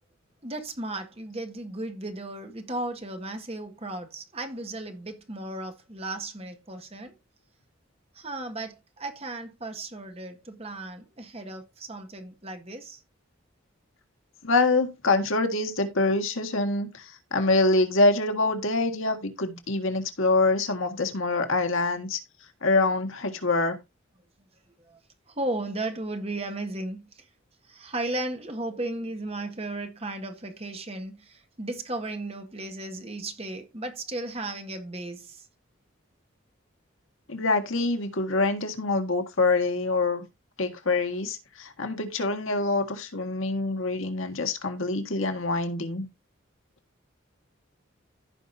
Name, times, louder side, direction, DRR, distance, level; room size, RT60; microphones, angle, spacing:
voice 1, 0.4-7.1 8.2-13.0 25.4-27.0 27.7-35.4, right 2 dB, 30° right, 1.6 m, -35 dB
voice 2, 14.4-22.2 22.6-23.8 37.3-40.2 40.6-46.1, left 2 dB, 80° left, 1.7 m, -25 dB
15.0 x 5.4 x 2.6 m
head